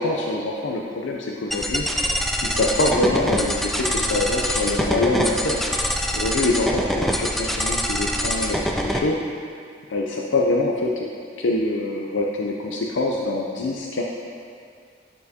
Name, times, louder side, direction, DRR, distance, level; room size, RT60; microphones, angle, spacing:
voice 1, 0.0-2.1 2.4-5.6 6.1-9.2 9.9-11.1 11.4-14.0, left 2 dB, 90° left, -1 dB, 0.5 m, -24 dB
sound 1, 1.5-9.0, equal, ahead, 0.3 m, -24 dB
11.0 x 4.5 x 2.8 m, 2.2 s
head